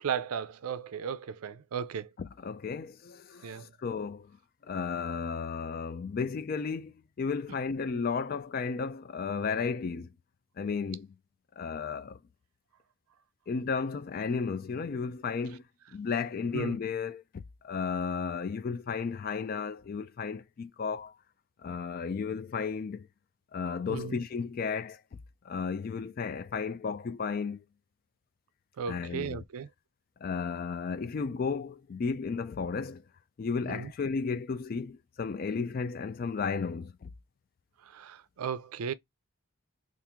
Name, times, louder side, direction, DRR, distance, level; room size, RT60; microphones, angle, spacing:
voice 1, 0.0-2.1 3.4-3.7 16.5-16.8 23.9-24.2 28.8-29.7 33.7-33.9 37.9-38.9, right 7 dB, 85° right, 0.4 m, -35 dB
voice 2, 2.2-4.3 4.6-10.1 10.6-11.1 11.6-12.2 13.5-15.6 15.9-21.1 21.6-23.1 23.5-25.0 25.4-27.6 28.9-29.4 30.2-33.0 33.4-37.1, left 5 dB, 40° left, 0.3 m, -33 dB
2.9 x 2.5 x 3.5 m
head